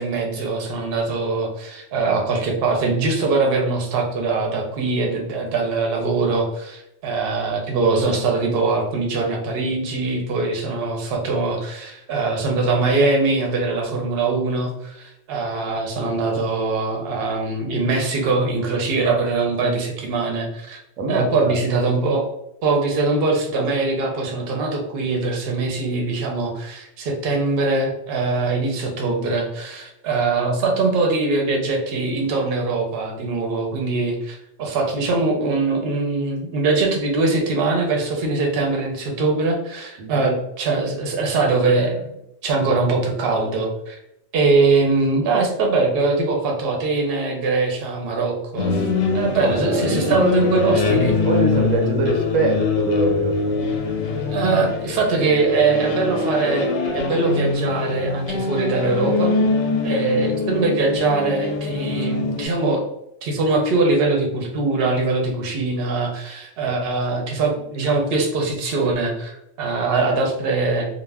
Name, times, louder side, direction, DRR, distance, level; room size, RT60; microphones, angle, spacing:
voice 1, 0.0-20.8 21.1-22.2 22.6-42.1 42.4-44.0 44.3-48.8 49.1-51.2 54.3-59.3 59.8-62.8 63.2-70.9, right 3 dB, 55° right, 1 dB, 0.8 m, -22 dB
voice 2, 21.0-21.6 40.0-40.3 49.2-50.6 51.2-53.4 66.7-66.8, right 2 dB, 90° right, 3 dB, 1.0 m, -24 dB
sound 1, 48.6-62.5, left 4 dB, 85° left, 1.0 m, -23 dB
2.4 x 2.1 x 3.3 m, 0.81 s
omnidirectional pair, 1.3 m